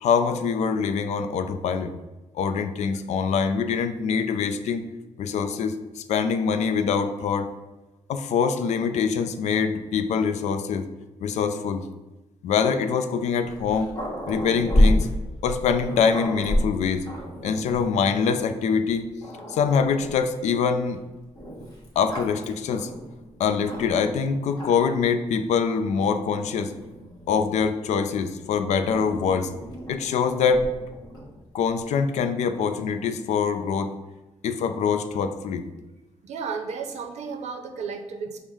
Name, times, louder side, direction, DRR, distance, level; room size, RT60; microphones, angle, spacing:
voice 1, 0.0-1.9 2.3-4.8 5.2-7.5 8.1-10.9 11.2-11.9 12.4-13.9 14.3-15.1 15.4-17.1 17.4-19.1 19.5-21.0 22.0-22.9 23.4-26.7 27.3-29.5 29.9-30.7 31.5-33.9 34.4-35.6, left 6 dB, 90° left, 9 dB, 0.4 m, -24 dB
Growling, 13.5-18.1 18.7-18.8 19.2-20.3 21.4-24.2 24.5-25.0 25.9-27.7 28.9-31.4, left 1 dB, 35° left, 1.2 m, -29 dB
voice 2, 36.2-38.4, right 5 dB, 80° right, 6 dB, 0.5 m, -33 dB
5.3 x 2.1 x 4.7 m, 1.1 s
cardioid pair, 110°, 11 cm